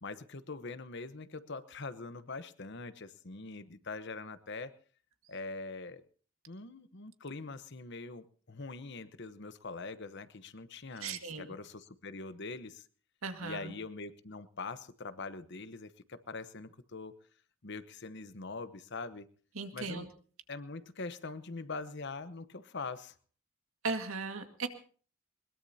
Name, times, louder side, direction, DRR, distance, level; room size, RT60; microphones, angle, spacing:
voice 1, 0.0-4.7 5.3-6.0 6.5-12.8 13.4-17.1 17.6-19.3 19.7-20.1 20.5-23.1, left 3 dB, 55° left, 12 dB, 1.0 m, -43 dB
voice 2, 11.0-11.5 13.2-13.7 19.6-20.1 23.8-24.7, right 4 dB, 85° right, 6 dB, 2.0 m, -37 dB
21.5 x 21.5 x 2.8 m, 0.42 s
head